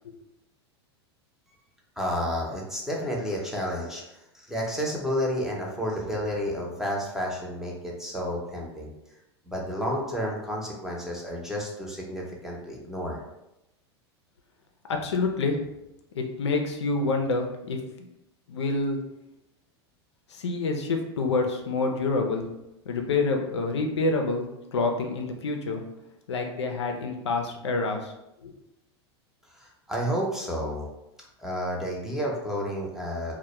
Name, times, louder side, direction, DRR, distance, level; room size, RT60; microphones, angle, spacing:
voice 1, 2.0-8.9 9.5-13.2 29.5-30.9 31.4-33.4, equal, 5° right, -3 dB, 0.6 m, -31 dB
voice 2, 14.9-15.6 16.2-17.8 18.5-19.0 20.3-22.5 22.9-25.8 26.3-28.1 28.4-28.5, left 3 dB, 85° left, 3 dB, 0.4 m, -27 dB
2.1 x 2.1 x 2.9 m, 0.88 s
hypercardioid pair, 95°, 14 cm